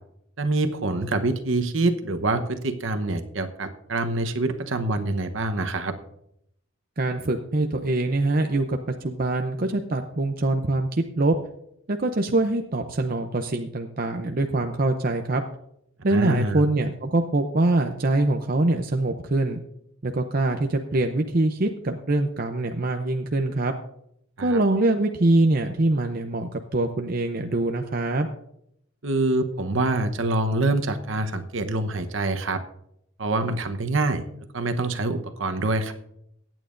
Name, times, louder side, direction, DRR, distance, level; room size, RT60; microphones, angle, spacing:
voice 1, 0.4-5.9 16.1-16.6 24.4-24.6 29.0-32.6 33.2-34.2 34.5-35.9, right 2 dB, 65° right, 8 dB, 1.0 m, -25 dB
voice 2, 7.0-11.4 11.9-15.4 16.0-19.6 20.0-23.7 24.4-28.3, right 2 dB, 45° right, 5 dB, 0.6 m, -24 dB
23.0 x 9.1 x 2.6 m, 0.76 s
head